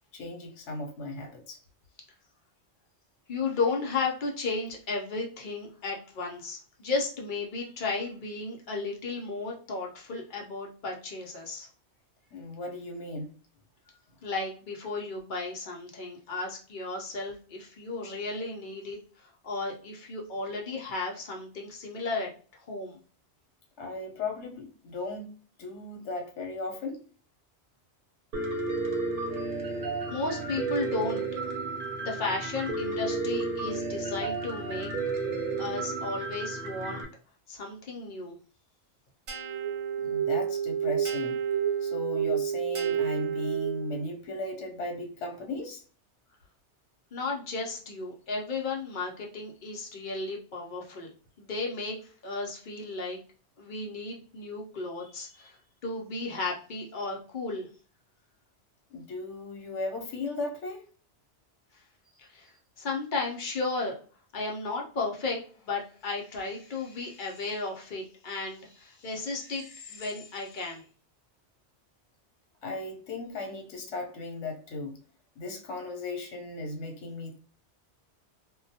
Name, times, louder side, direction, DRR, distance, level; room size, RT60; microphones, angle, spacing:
voice 1, 0.1-1.6 12.3-13.3 23.8-25.3 25.6-27.0 40.0-41.4 41.8-45.8 55.0-55.5 58.9-60.8 72.6-75.0 75.4-77.4, left 2 dB, 85° left, 1.0 m, -36 dB
voice 2, 3.3-11.7 14.2-23.0 29.4-29.6 30.1-31.2 32.0-34.9 35.6-37.0 37.5-38.4 47.1-51.1 51.4-53.2 53.6-57.7 62.2-63.9 64.3-70.8, left 3 dB, 55° left, 0.6 m, -34 dB
Piano, 28.3-37.0, right 3 dB, 55° right, 0.7 m, -32 dB
sound 1, 39.3-44.1, right 8 dB, 85° right, 1.0 m, -29 dB
2.2 x 2.1 x 2.6 m
omnidirectional pair, 1.2 m